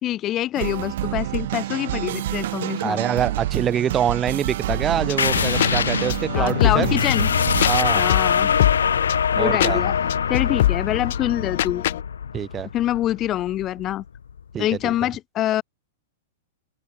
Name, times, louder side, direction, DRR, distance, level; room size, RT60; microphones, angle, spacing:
voice 1, 0.0-3.0 6.3-7.3 7.9-8.5 9.4-10.0 10.3-11.8 12.7-14.0 14.6-15.6, left 13 dB, 35° left, 3.8 m, -25 dB
sound 1, 0.5-7.8, right 14 dB, 65° right, 2.6 m, -28 dB
voice 2, 2.8-7.0 7.7-8.0 9.4-9.8 12.3-12.7 14.5-14.9, right 9 dB, 25° right, 7.1 m, -25 dB
sound 2, 4.7-12.0, left 14 dB, 65° left, 6.6 m, -26 dB
sound 3, 5.2-14.4, left 7 dB, 85° left, 0.8 m, -23 dB
open air
hypercardioid pair, 115°, 0 cm